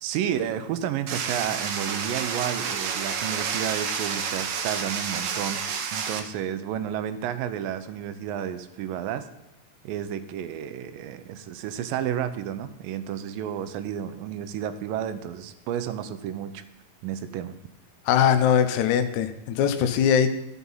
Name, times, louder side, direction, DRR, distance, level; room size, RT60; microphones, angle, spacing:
voice 1, 0.0-5.6 5.9-9.3 9.8-16.6 17.0-17.5, right 10 dB, 85° right, 11 dB, 2.4 m, -31 dB
sound 1, 1.1-6.2, right 6 dB, 70° right, 2.1 m, -30 dB
voice 2, 18.1-20.3, left 8 dB, 70° left, 8 dB, 2.1 m, -21 dB
13.5 x 6.1 x 5.5 m, 0.90 s
omnidirectional pair, 3.9 m